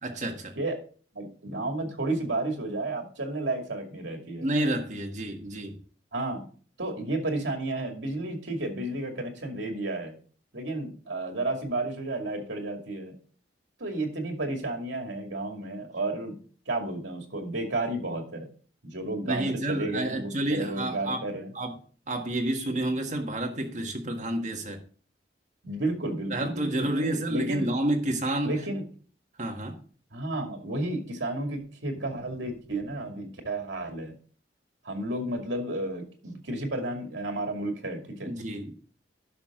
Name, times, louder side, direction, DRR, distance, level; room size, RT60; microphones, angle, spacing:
voice 1, 0.0-0.5 4.4-5.8 19.2-21.2 21.5-21.8 22.1-24.8 26.3-28.5 29.4-29.8 38.3-38.7, right 1 dB, 40° right, 2 dB, 1.7 m, -29 dB
voice 2, 1.1-4.5 6.1-6.5 6.8-10.2 10.5-13.1 13.8-16.3 16.7-18.5 18.8-21.5 25.6-27.7 28.4-28.8 30.1-34.1 34.8-38.3, right 2 dB, 85° right, 3 dB, 2.4 m, -32 dB
11.0 x 6.4 x 3.8 m, 0.41 s
head